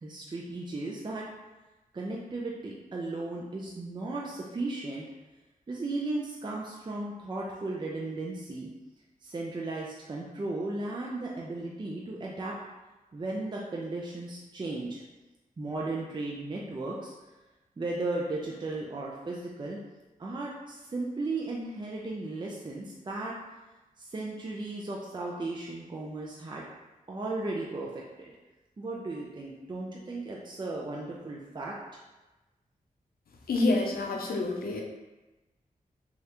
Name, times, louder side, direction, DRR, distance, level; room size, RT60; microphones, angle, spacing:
voice 1, 0.0-1.2 1.9-5.0 5.7-8.7 9.2-12.6 13.1-15.0 15.6-17.1 17.8-19.8 20.2-23.3 24.0-26.7 27.1-28.3 28.8-31.8, right 2 dB, 30° right, -3 dB, 0.4 m, -35 dB
voice 2, 33.5-34.8, left 2 dB, 85° left, 0 dB, 0.5 m, -27 dB
3.2 x 2.4 x 2.9 m, 1.1 s
wide cardioid pair, 75°, 15 cm